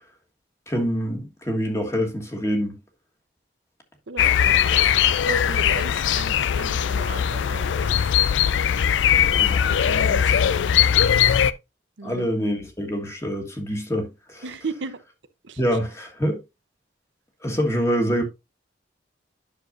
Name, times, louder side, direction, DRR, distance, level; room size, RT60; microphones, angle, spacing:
voice 1, 0.7-2.8 9.4-9.6 12.0-14.4 15.6-16.4 17.4-18.2, equal, 15° left, 1.5 m, -25 dB
voice 2, 4.1-4.6 5.2-8.0 8.7-9.3 9.5-11.4 12.0-12.3 14.4-15.0 15.4-15.6, right 3 dB, 80° right, 0.8 m, -36 dB
sound 1, 4.2-11.5, left 9 dB, 80° left, 0.4 m, -20 dB
10.0 x 6.3 x 2.5 m
head